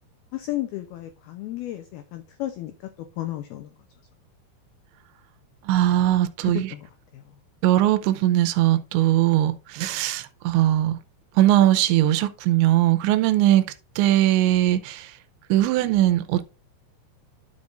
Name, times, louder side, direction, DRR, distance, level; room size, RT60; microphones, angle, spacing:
voice 1, 0.3-3.7 6.4-6.9 7.1-7.2 14.7-14.8, left 15 dB, 90° left, 2.1 m, -33 dB
voice 2, 5.6-6.7 7.6-11.0 11.4-13.7 14.0-15.2 15.5-16.4, right 14 dB, 85° right, 2.9 m, -20 dB
12.0 x 5.4 x 2.5 m
omnidirectional pair, 5.3 m